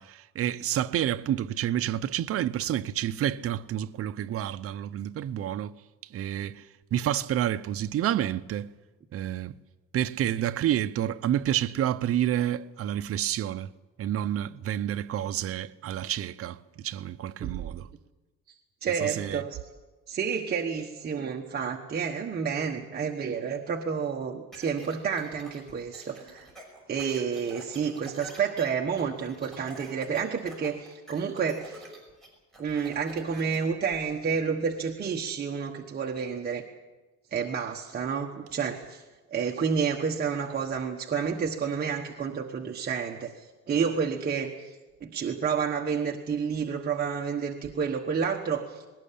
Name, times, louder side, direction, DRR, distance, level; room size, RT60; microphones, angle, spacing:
voice 1, 0.0-5.7 6.1-6.6 6.9-8.7 9.1-9.5 9.9-13.7 14.0-17.9 19.0-19.4, right 11 dB, 45° right, 0.7 m, -29 dB
voice 2, 18.8-19.6 20.1-26.5 26.9-31.8 32.6-36.6 37.3-39.0 39.3-44.7 45.0-48.8, right 6 dB, 30° right, 1.2 m, -30 dB
sound 1, 24.5-33.6, right 2 dB, ahead, 6.0 m, -47 dB
20.5 x 18.5 x 8.6 m
cardioid pair, 170°, 31 cm